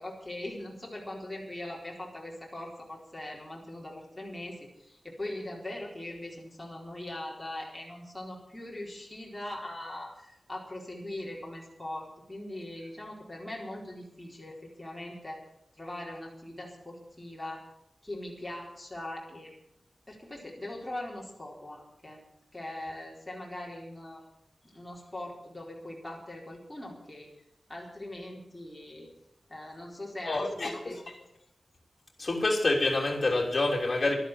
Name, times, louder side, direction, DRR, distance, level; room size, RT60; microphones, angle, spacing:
voice 1, 0.0-15.4 15.8-17.6 18.0-19.5 20.1-22.2 22.5-24.2 24.7-27.3 27.7-29.1 29.5-31.3, left 1 dB, 10° left, 4.3 m, -41 dB
voice 2, 30.2-30.9 32.2-34.2, left 2 dB, 40° left, 3.3 m, -27 dB
12.5 x 11.5 x 9.1 m
wide cardioid pair, 120°, 0 cm